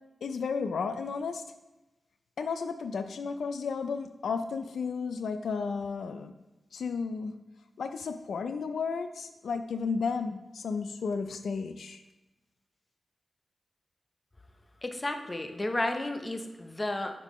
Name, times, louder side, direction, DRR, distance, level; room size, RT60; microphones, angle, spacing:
voice 1, 0.2-1.5 2.4-6.3 6.7-7.4 7.8-12.0, left 5 dB, 90° left, 8 dB, 0.3 m, -33 dB
voice 2, 14.8-17.2, left 1 dB, 25° left, 6 dB, 0.6 m, -32 dB
6.5 x 5.4 x 3.1 m, 1.0 s
wide cardioid pair, 90°, 0 cm